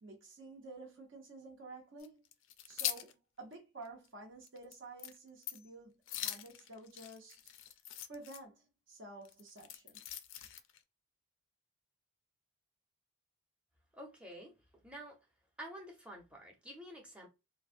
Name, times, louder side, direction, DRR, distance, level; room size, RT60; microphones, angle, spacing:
voice 1, 0.0-2.2 2.7-7.4 8.1-10.0, right 2 dB, 55° right, 0.8 m, -51 dB
sound 1, 2.0-3.1 3.5-3.6 4.1-4.2 4.4-4.7 5.0-5.2 5.4-5.7 6.1-8.4 9.2-10.8, left 11 dB, 60° left, 0.4 m, -42 dB
voice 2, 13.9-15.2 15.6-17.3, equal, 5° right, 0.7 m, -49 dB
3.1 x 2.3 x 2.5 m
head